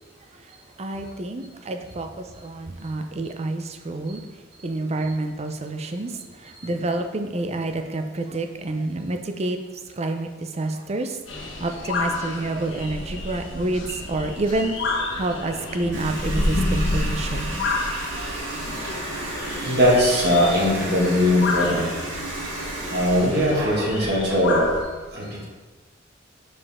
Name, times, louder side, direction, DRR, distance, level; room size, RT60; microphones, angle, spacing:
voice 1, 0.8-4.2 4.6-9.6 10.0-11.2 11.6-14.7 15.2-17.5 18.2-18.5 18.8-18.9, right 2 dB, 35° right, 6 dB, 0.5 m, -28 dB
sound 1, 11.3-24.8, left 2 dB, 80° left, 1.3 m, -30 dB
Water tap faucet, 15.9-24.4, right 1 dB, 75° right, 2.1 m, -33 dB
voice 2, 19.4-22.1 22.9-24.8 25.1-25.5, left 1 dB, 60° right, -4 dB, 1.8 m, -20 dB
6.7 x 5.1 x 3.6 m, 1.3 s
head